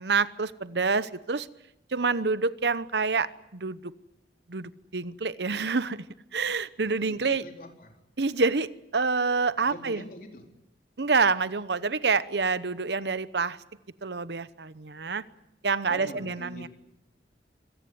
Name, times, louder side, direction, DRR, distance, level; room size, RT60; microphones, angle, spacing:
voice 1, 0.0-1.5 1.9-3.9 4.5-6.0 6.3-7.4 8.2-10.0 11.0-13.6 14.0-15.2 15.6-16.7, right 4 dB, 80° right, 16 dB, 0.9 m, -27 dB
voice 2, 7.1-8.0 9.6-10.5 15.9-16.7, left 1 dB, 50° left, 3 dB, 4.1 m, -43 dB
25.5 x 18.0 x 9.7 m, 0.88 s
head